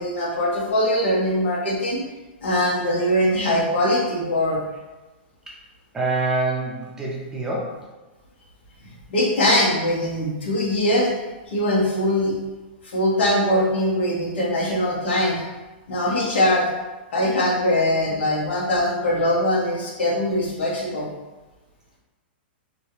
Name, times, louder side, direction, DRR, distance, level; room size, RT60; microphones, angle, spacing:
voice 1, 0.0-2.0 2.4-4.6 9.1-11.1 11.5-12.3 12.8-15.4 15.9-16.7 17.1-21.1, left 1 dB, 80° left, -5 dB, 1.1 m, -21 dB
voice 2, 5.9-7.8, right 2 dB, 10° right, -4 dB, 0.5 m, -25 dB
3.1 x 2.5 x 2.8 m, 1.2 s
hypercardioid pair, 145°, 6 cm